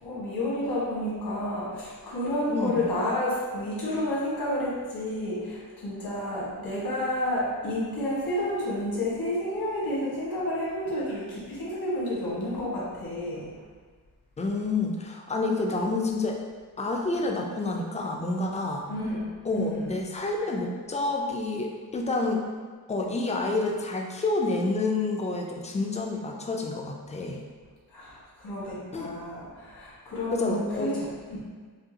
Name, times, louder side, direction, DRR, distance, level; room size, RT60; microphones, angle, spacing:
voice 1, 0.0-13.6 18.9-19.9 27.9-31.1, left 1 dB, 80° left, -7 dB, 1.3 m, -30 dB
voice 2, 2.5-2.9 14.4-16.4 16.8-18.9 19.5-22.4 22.9-27.4 28.9-29.1 30.3-31.0, left 3 dB, 20° left, 0 dB, 0.3 m, -28 dB
5.0 x 2.3 x 2.8 m, 1.5 s
wide cardioid pair, 140°, 38 cm